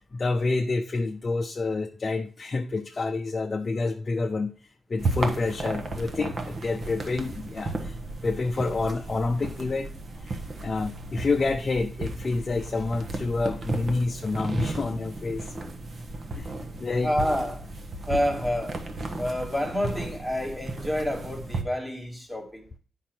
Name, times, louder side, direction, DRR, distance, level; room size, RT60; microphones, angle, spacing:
voice 1, 0.0-15.5 16.4-16.5 16.8-17.1, left 3 dB, 35° left, 0.6 m, -28 dB
sound 1, 5.0-21.6, right 2 dB, 45° right, 1.1 m, -34 dB
voice 2, 17.0-17.7 18.1-18.8 19.2-22.7, equal, 5° right, 1.6 m, -28 dB
9.3 x 5.4 x 4.4 m
wide cardioid pair, 150°, 0 cm